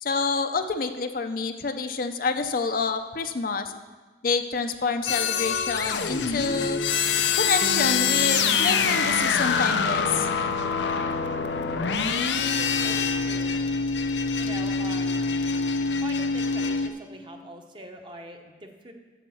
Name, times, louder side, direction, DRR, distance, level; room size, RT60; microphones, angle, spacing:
voice 1, 0.0-3.7 4.2-6.8 7.4-10.3, left 4 dB, 55° left, 7 dB, 0.6 m, -27 dB
sound 1, 5.1-16.9, left 5 dB, 90° left, 0.7 m, -25 dB
Bass guitar, 7.6-11.9, right 3 dB, 70° right, 0.6 m, -37 dB
voice 2, 12.6-13.6 14.4-15.2 16.0-18.9, right 1 dB, 30° right, 4 dB, 1.0 m, -43 dB
9.0 x 7.2 x 7.1 m, 1.3 s
head